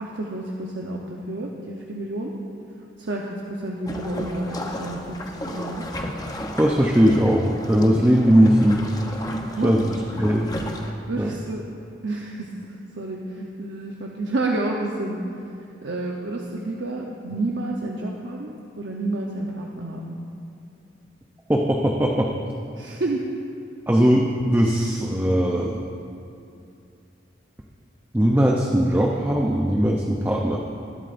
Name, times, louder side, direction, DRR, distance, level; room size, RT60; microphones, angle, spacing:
voice 1, 0.0-2.3 3.0-5.9 9.6-9.9 10.1-10.2 11.1-11.6 12.0-15.2 15.8-20.2 22.7-23.2, right 2 dB, 70° right, -1 dB, 0.8 m, -30 dB
sound 1, 3.9-10.9, left 1 dB, 20° left, 0.8 m, -34 dB
voice 2, 6.5-8.8 9.6-9.9 10.2-10.5 11.2-11.3 21.5-22.3 23.9-25.8 28.1-30.6, equal, 10° right, -1 dB, 0.6 m, -19 dB
20.5 x 11.5 x 2.6 m, 2.5 s
head